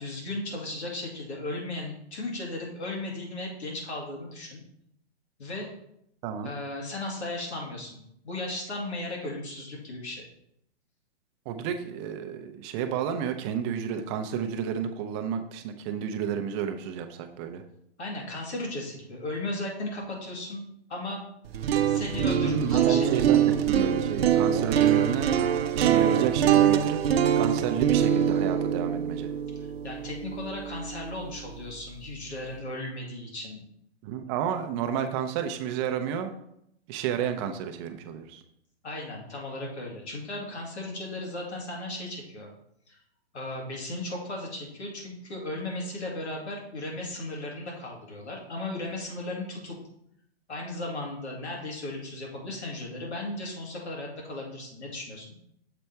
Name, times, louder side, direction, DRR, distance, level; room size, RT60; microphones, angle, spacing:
voice 1, 0.0-4.6 5.4-5.7 6.4-10.2 18.0-20.6 20.9-21.2 21.9-23.5 29.5-33.6 38.8-42.5 42.9-43.0 43.3-49.8 50.5-55.3, left 2 dB, 85° left, -1 dB, 2.4 m, -36 dB
voice 2, 11.5-17.6 22.4-23.4 23.7-25.3 25.7-27.0 27.3-29.3 34.0-36.4 36.9-38.4, right 8 dB, 25° right, 6 dB, 0.6 m, -31 dB
sound 1, 21.4-31.5, right 9 dB, 65° right, 0.7 m, -24 dB
6.9 x 4.1 x 4.5 m, 0.75 s
hypercardioid pair, 135°, 33 cm